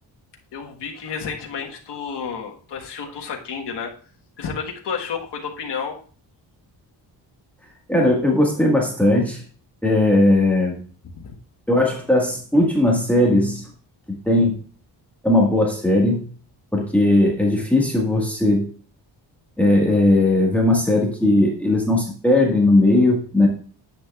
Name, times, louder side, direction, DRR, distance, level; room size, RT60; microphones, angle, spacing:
voice 1, 0.5-3.9 4.4-6.0 11.0-11.3, left 6 dB, 70° left, 0 dB, 1.5 m, -31 dB
voice 2, 7.9-9.4 9.8-10.8 11.7-13.6 14.2-14.5 15.2-16.2 16.7-18.7 19.6-23.5, left 1 dB, 5° left, -2 dB, 1.7 m, -18 dB
10.0 x 8.3 x 2.4 m, 0.41 s
wide cardioid pair, 170°, 43 cm